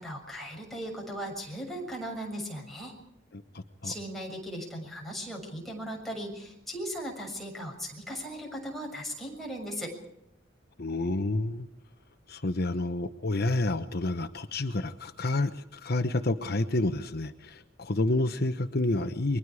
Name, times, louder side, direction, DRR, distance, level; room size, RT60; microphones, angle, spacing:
voice 1, 0.0-2.9 3.8-10.0, equal, ahead, -1 dB, 6.9 m, -37 dB
voice 2, 3.5-3.9 10.8-11.7 12.3-19.4, left 2 dB, 55° left, 8 dB, 1.1 m, -29 dB
29.5 x 23.0 x 4.9 m, 0.79 s
head